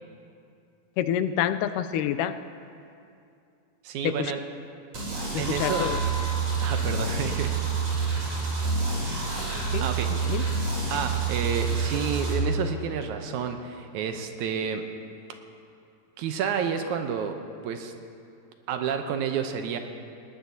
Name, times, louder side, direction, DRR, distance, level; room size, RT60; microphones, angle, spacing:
voice 1, 1.0-2.4 4.0-4.3 5.3-6.0 9.7-10.4, left 10 dB, 85° left, 11 dB, 2.1 m, -28 dB
voice 2, 3.8-4.4 5.4-5.9 6.6-7.5 9.8-10.1 10.9-14.9 16.2-17.4 17.6-17.9 18.7-19.8, right 7 dB, 75° right, 6 dB, 2.0 m, -30 dB
sound 1, 4.9-12.3, right 5 dB, 55° right, 4.4 m, -28 dB
Wind instrument woodwind instrument, 5.5-11.7, equal, 40° left, 2.5 m, -43 dB
19.5 x 18.5 x 2.7 m, 2.5 s
omnidirectional pair, 3.7 m